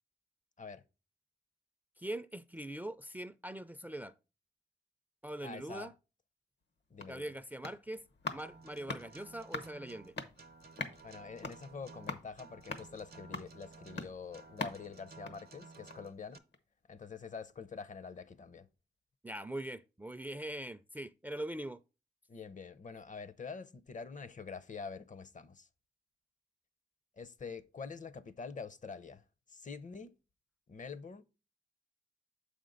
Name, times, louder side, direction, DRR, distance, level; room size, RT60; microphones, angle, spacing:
voice 1, 2.0-4.1 5.2-5.9 7.1-8.0 8.3-10.1 19.2-21.8, right 1 dB, 10° right, 0.4 m, -42 dB
voice 2, 5.4-5.9 6.9-7.3 11.0-16.4 16.9-18.7 22.3-25.7 27.2-29.2 29.5-30.2 30.7-31.2, left 5 dB, 45° left, 0.6 m, -46 dB
sound 1, 6.6-16.2 16.5-16.6, left 3 dB, 75° left, 1.0 m, -45 dB
Acoustic guitar, 8.4-16.4, right 4 dB, 60° right, 0.7 m, -55 dB
7.4 x 5.1 x 3.8 m
wide cardioid pair, 80°, 18 cm